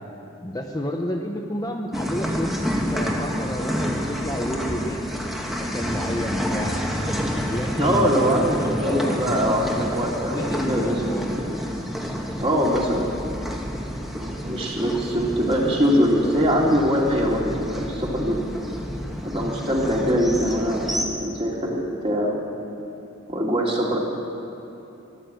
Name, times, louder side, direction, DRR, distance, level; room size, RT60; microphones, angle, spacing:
voice 1, 0.4-2.6 2.9-5.0 5.6-6.8 7.5-8.3 8.8-9.2 10.3-11.4, equal, 20° left, 1 dB, 0.8 m, -30 dB
sound 1, 1.9-21.0, equal, ahead, 1.2 m, -29 dB
voice 2, 7.8-11.5 12.4-13.1 14.1-18.4 19.2-22.4 23.3-24.0, equal, 30° right, -3 dB, 2.5 m, -23 dB
15.0 x 11.0 x 7.7 m, 2.9 s
head